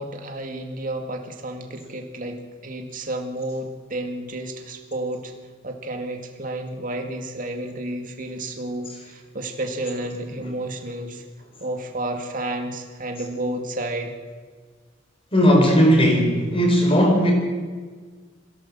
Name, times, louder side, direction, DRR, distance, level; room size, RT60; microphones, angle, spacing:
voice 1, 0.0-5.3 5.6-11.2 11.6-14.1, right 1 dB, 45° right, 3 dB, 2.2 m, -31 dB
voice 2, 15.3-17.3, equal, 30° left, 2 dB, 4.7 m, -17 dB
22.0 x 16.5 x 7.5 m, 1.5 s
head